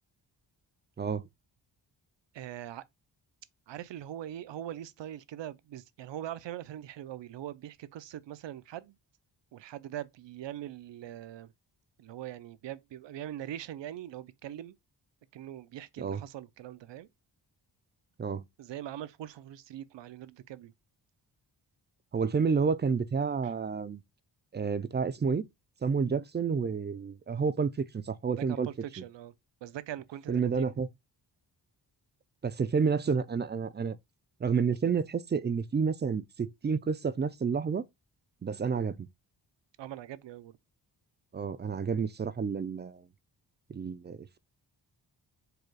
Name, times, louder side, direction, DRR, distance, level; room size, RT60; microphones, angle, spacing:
voice 1, 1.0-1.3 16.0-16.2 18.2-18.4 22.1-24.0 24.5-25.5 25.8-28.7 29.0-29.1 30.3-30.9 32.4-34.0 34.4-37.8 38.4-39.1 41.3-43.0 43.7-44.4, right 5 dB, 25° right, 0.4 m, -30 dB
voice 2, 2.3-2.8 3.7-9.0 9.5-11.5 12.0-14.8 15.3-17.1 18.6-20.7 23.4-23.5 28.3-29.3 29.6-30.7 39.8-40.6, right 12 dB, 75° right, 0.6 m, -42 dB
4.9 x 2.3 x 4.6 m
cardioid pair, 95°, 43 cm